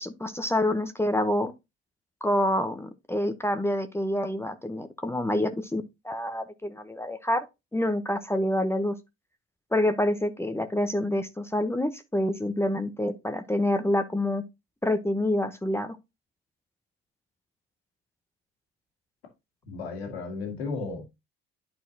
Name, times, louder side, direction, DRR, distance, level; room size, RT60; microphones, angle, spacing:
voice 1, 0.0-1.5 2.2-7.4 7.7-9.0 9.7-14.4 14.8-16.0, left 1 dB, 10° left, 0.8 m, -27 dB
voice 2, 19.7-21.1, left 4 dB, 90° left, 1.8 m, -34 dB
11.0 x 4.3 x 2.8 m
hypercardioid pair, 65°, 30 cm